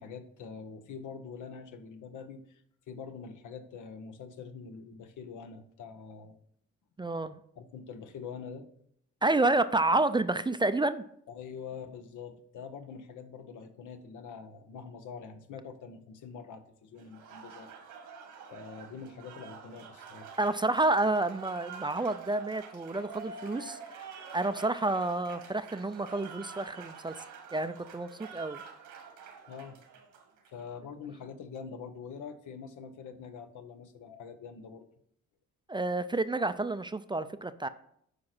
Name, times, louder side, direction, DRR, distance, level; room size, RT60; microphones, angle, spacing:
voice 1, 0.0-2.6 2.9-6.4 7.6-8.7 11.3-17.7 18.5-20.3 29.5-29.8 30.5-34.9, left 6 dB, 80° left, 8 dB, 1.1 m, -45 dB
voice 2, 7.0-7.4 9.2-11.0 20.4-24.1 24.3-27.1 27.5-28.6 35.7-37.7, right 2 dB, 15° right, 11 dB, 0.4 m, -29 dB
Applause, 17.0-30.6, right 6 dB, 90° right, 1.9 m, -47 dB
8.8 x 5.2 x 6.0 m, 0.68 s
cardioid pair, 90°, 30 cm